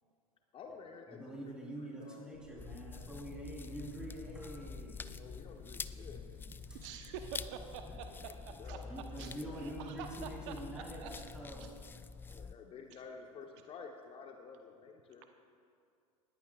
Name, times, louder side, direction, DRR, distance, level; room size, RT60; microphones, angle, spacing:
voice 1, 0.5-2.3 4.4-6.2 8.1-9.7 12.2-15.3, left 5 dB, 30° left, 3 dB, 1.0 m, -52 dB
voice 2, 1.1-5.0 6.7-6.8 7.9-8.0 8.8-11.7, right 1 dB, 5° right, -3 dB, 3.7 m, -45 dB
Boat Water vehicle, 2.3-7.5, equal, 60° left, 3.5 m, -58 dB
sound 1, 2.6-12.5, left 5 dB, 10° left, 0.3 m, -47 dB
voice 3, 6.7-11.3 11.6-11.7 12.9-13.0, right 8 dB, 55° right, 6 dB, 0.9 m, -47 dB
20.0 x 14.5 x 2.4 m, 2.4 s
figure-of-eight pair, 85°, 19 cm